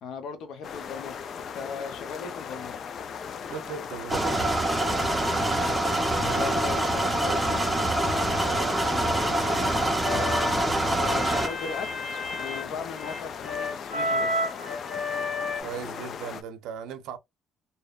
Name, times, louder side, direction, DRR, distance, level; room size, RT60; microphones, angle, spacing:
voice 1, 0.0-2.8 6.2-7.6 7.9-9.7 11.0-14.5, left 5 dB, 70° left, 0.8 m, -39 dB
sound 1, 0.6-16.4, left 7 dB, 50° left, 0.3 m, -38 dB
voice 2, 3.4-4.8 6.2-6.4 15.6-17.2, right 8 dB, 80° right, 0.6 m, -37 dB
sound 2, 4.1-11.5, right 1 dB, 5° right, 0.6 m, -25 dB
sound 3, 10.0-15.6, left 1 dB, 30° left, 1.0 m, -31 dB
2.8 x 2.1 x 2.3 m
cardioid pair, 120°, 0 cm